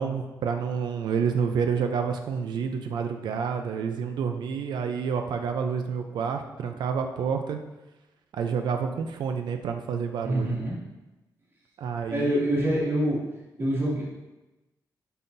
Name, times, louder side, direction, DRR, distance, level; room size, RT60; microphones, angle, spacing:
voice 1, 0.0-7.6 8.3-10.6 11.8-12.4, right 6 dB, 85° right, 5 dB, 0.6 m, -29 dB
voice 2, 10.2-10.8 12.1-13.2 13.6-14.0, right 1 dB, 35° right, -7 dB, 2.7 m, -25 dB
11.0 x 5.7 x 2.7 m, 1.1 s
wide cardioid pair, 155°, 7 cm